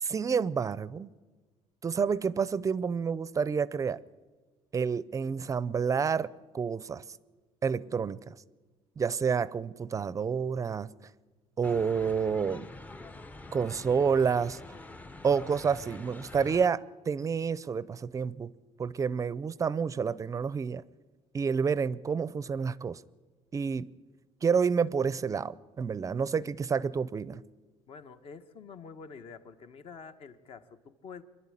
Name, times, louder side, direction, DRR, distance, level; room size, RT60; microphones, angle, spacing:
voice 1, 0.0-1.1 1.8-4.0 4.7-7.0 7.6-8.3 9.0-10.9 11.6-12.7 13.5-14.6 15.2-18.5 18.8-20.8 21.3-23.0 23.5-23.9 24.4-27.4, right 6 dB, 25° right, 0.5 m, -29 dB
sound 1, 11.6-16.7, left 2 dB, 15° left, 0.6 m, -46 dB
voice 2, 27.9-31.2, left 5 dB, 50° left, 1.3 m, -47 dB
25.0 x 11.5 x 9.9 m
cardioid pair, 130°, 12 cm